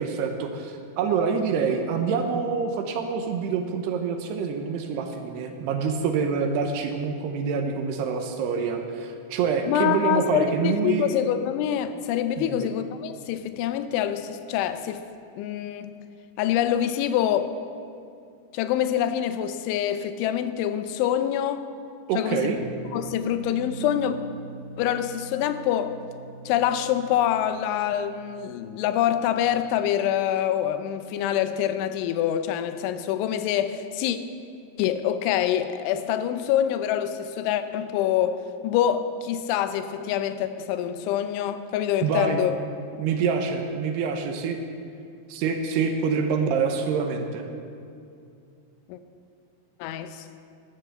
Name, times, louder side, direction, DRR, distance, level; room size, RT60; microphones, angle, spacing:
voice 1, 0.0-11.1 12.4-12.7 22.1-22.6 42.0-42.4 43.0-44.6 45.3-47.4, right 5 dB, 75° right, 5 dB, 2.7 m, -26 dB
voice 2, 9.7-15.1 15.4-15.9 16.4-17.5 18.5-21.7 22.2-22.5 22.9-24.2 24.8-25.9 26.5-34.2 34.8-42.6 48.9-49.0 49.8-50.3, left 10 dB, 90° left, 11 dB, 3.2 m, -25 dB
sound 1, 22.6-29.4, right 3 dB, 50° right, 3.6 m, -43 dB
13.0 x 11.5 x 7.9 m, 2.5 s
omnidirectional pair, 5.3 m